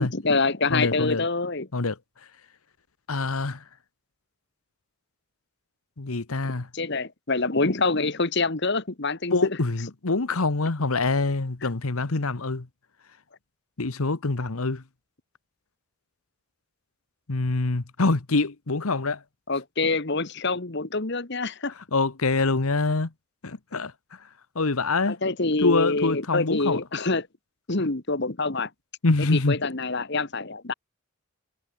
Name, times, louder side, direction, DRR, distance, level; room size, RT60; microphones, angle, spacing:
voice 1, 0.0-1.7 6.7-9.6 11.6-11.7 19.5-21.7 25.1-27.3 27.7-28.7 29.2-30.7, left 3 dB, 50° left, 1.5 m, -26 dB
voice 2, 0.7-1.2 1.7-2.0 3.1-3.6 6.0-6.7 9.3-12.7 13.8-14.8 17.3-19.2 21.9-23.1 23.4-23.9 24.5-25.2 25.6-26.8 29.0-29.6, left 3 dB, 75° left, 1.2 m, -25 dB
head